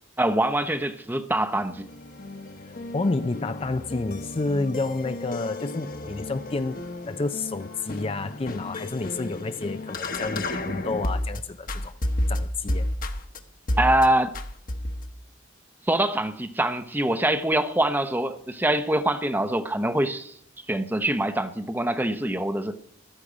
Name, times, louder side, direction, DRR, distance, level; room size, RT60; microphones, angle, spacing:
voice 1, 0.2-1.9 13.8-14.3 15.9-20.3 20.7-22.8, right 1 dB, 10° right, 0.7 m, -24 dB
sound 1, 1.6-11.4 11.7-13.4 13.7-14.1 14.3-15.1, left 1 dB, 45° left, 1.1 m, -32 dB
voice 2, 2.9-6.8 7.1-11.9 12.3-12.9, left 3 dB, 30° left, 0.4 m, -29 dB
14.5 x 12.0 x 5.0 m
head